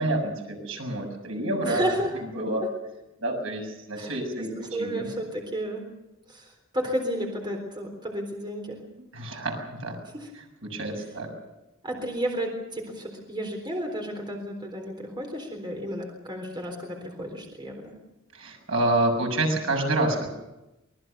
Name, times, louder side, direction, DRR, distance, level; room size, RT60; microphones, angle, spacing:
voice 1, 0.0-1.8 2.3-2.6 3.2-4.5 4.8-5.0 9.1-10.0 10.6-11.3 18.3-20.3, right 2 dB, 70° right, 3 dB, 6.9 m, -28 dB
voice 2, 1.6-2.1 2.6-2.7 3.9-5.8 6.3-8.8 10.1-10.3 11.8-17.9, right 1 dB, 20° right, 2 dB, 3.9 m, -32 dB
25.0 x 20.0 x 6.8 m, 0.97 s
head